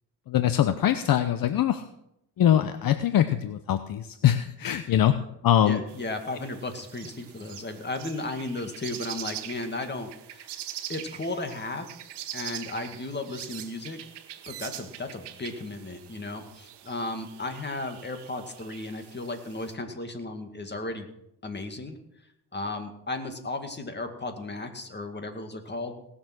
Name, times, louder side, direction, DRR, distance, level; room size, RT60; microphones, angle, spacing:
voice 1, 0.3-1.8 2.4-5.2 5.4-5.8, left 11 dB, 60° left, 10 dB, 0.8 m, -23 dB
voice 2, 5.7-10.6 10.9-11.9 12.3-14.0 14.5-21.1 21.4-22.0 22.5-25.9, left 2 dB, 25° left, 6 dB, 2.2 m, -35 dB
sound 1, 5.9-19.7, right 12 dB, 85° right, 1.2 m, -43 dB
18.5 x 7.1 x 6.1 m, 0.80 s
cardioid pair, 85°, 40 cm